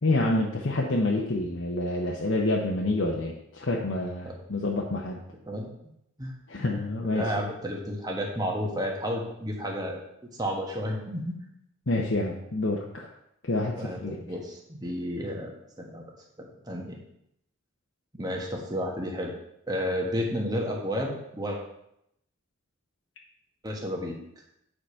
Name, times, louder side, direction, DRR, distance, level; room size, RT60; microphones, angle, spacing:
voice 1, 0.0-5.2 6.5-7.5 11.9-13.1 13.4-14.2, left 2 dB, 65° left, -1 dB, 1.0 m, -28 dB
voice 2, 7.1-10.0 10.3-11.4 13.7-16.0 16.4-17.0 18.1-19.3 19.7-21.6 23.6-24.1, equal, 20° right, 0 dB, 1.4 m, -31 dB
9.0 x 5.1 x 5.6 m, 0.80 s
head